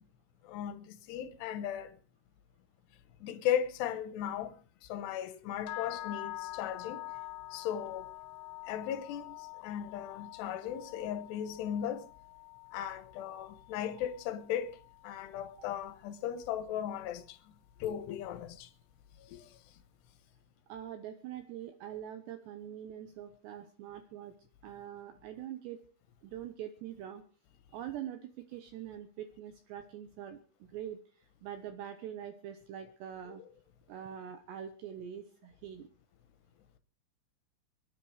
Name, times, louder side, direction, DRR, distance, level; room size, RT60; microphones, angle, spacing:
voice 1, 0.4-1.9 3.2-4.5 4.8-7.0 7.5-8.1 8.7-12.1 12.7-14.8 15.0-17.4 17.8-18.7 19.2-19.5 33.3-33.4, left 10 dB, 70° left, 2.8 m, -37 dB
sound 1, 5.7-15.7, left 18 dB, 85° left, 3.6 m, -46 dB
voice 2, 20.7-24.3 24.6-25.8 26.2-27.2 27.7-30.4 30.7-33.4 33.9-35.9, right 10 dB, 75° right, 2.7 m, -44 dB
24.5 x 10.5 x 4.8 m
omnidirectional pair, 5.9 m